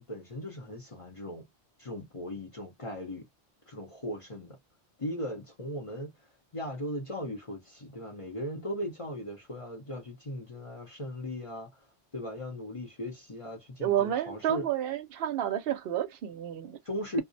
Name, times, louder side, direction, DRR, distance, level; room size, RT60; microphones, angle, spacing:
voice 1, 0.0-1.5 1.8-3.3 3.7-4.6 5.0-6.1 6.5-11.9 12.1-14.7 16.8-17.2, equal, 35° left, 0.7 m, -38 dB
voice 2, 13.8-16.8, right 11 dB, 65° right, 0.7 m, -30 dB
2.4 x 2.0 x 2.5 m
omnidirectional pair, 1.2 m